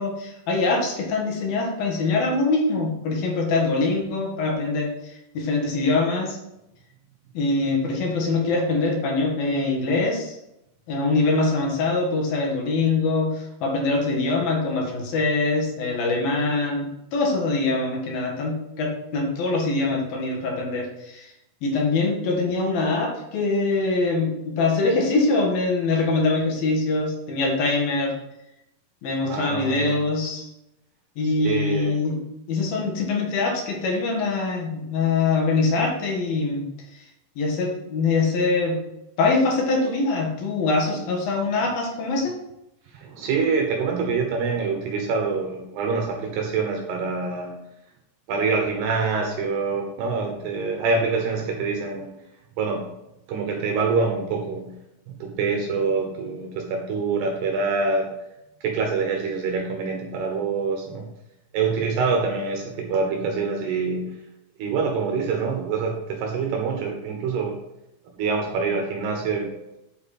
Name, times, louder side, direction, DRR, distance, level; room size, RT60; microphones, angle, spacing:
voice 1, 0.0-6.4 7.3-10.4 10.9-21.3 21.6-28.1 29.0-30.5 31.2-32.2 32.5-36.6 36.9-37.0 37.4-38.8 39.2-42.4, left 3 dB, 60° left, 0 dB, 3.2 m, -23 dB
voice 2, 29.3-30.0 31.4-32.0 42.9-47.6 48.3-52.1 52.6-52.9 53.3-54.7 55.2-58.1 58.6-61.1 61.5-64.2 64.6-67.6 68.2-69.7, right 4 dB, 70° right, 2 dB, 2.9 m, -25 dB
8.9 x 7.8 x 4.2 m, 0.87 s
omnidirectional pair, 5.6 m